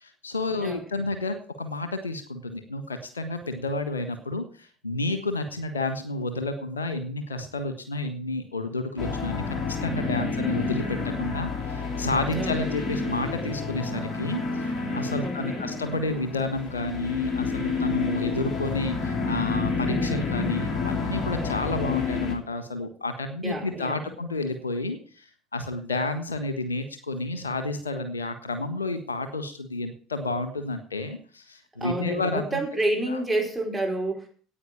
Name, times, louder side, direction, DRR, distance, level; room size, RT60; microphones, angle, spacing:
voice 1, 0.0-4.5 4.8-9.4 9.8-14.4 14.9-25.2 25.5-32.6 33.1-33.2, left 2 dB, 85° left, 10 dB, 1.4 m, -30 dB
sound 1, 9.0-22.4, left 4 dB, 40° left, 3.2 m, -29 dB
voice 2, 15.2-15.7 23.4-24.1 31.8-34.3, right 1 dB, 15° right, 0 dB, 4.9 m, -29 dB
9.8 x 8.9 x 8.5 m, 0.43 s
figure-of-eight pair, 65°, 0 cm